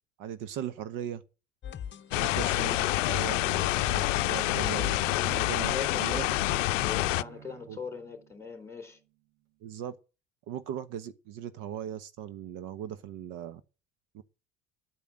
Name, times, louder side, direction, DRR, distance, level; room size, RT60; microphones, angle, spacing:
voice 1, 0.2-1.2 2.2-6.3 7.7-7.8 9.6-10.0 10.5-13.6 14.1-14.2, right 10 dB, 60° right, 1.1 m, -39 dB
sound 1, 1.6-6.9, left 9 dB, 30° left, 0.8 m, -42 dB
sound 2, 2.1-7.2, left 17 dB, 80° left, 0.6 m, -27 dB
Bowed string instrument, 4.0-8.9, right 9 dB, 80° right, 1.3 m, -49 dB
voice 2, 5.7-6.3 6.8-9.0, left 5 dB, 10° left, 3.6 m, -40 dB
10.0 x 8.6 x 7.6 m
hypercardioid pair, 70°, 37 cm